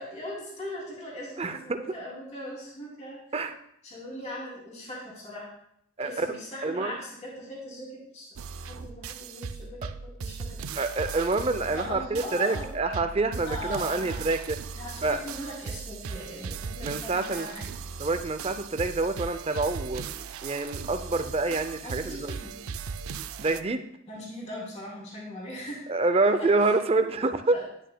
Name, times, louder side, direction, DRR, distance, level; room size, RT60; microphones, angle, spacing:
voice 1, 0.0-3.2 3.8-5.5 6.0-10.6 11.7-12.7 13.5-14.2 14.8-17.7 21.8-22.5 24.1-25.9 26.4-26.7 27.5-27.7, left 1 dB, 35° left, -4 dB, 2.8 m, -40 dB
voice 2, 1.4-1.8 3.3-3.5 6.0-6.3 6.6-7.0 10.8-14.6 15.0-15.2 16.8-17.5 18.0-22.3 23.4-23.9 25.9-27.6, right 3 dB, 30° right, 9 dB, 0.5 m, -27 dB
sound 1, 8.4-23.6, right 5 dB, 90° right, 0.5 m, -38 dB
10.5 x 9.2 x 2.2 m, 0.73 s
head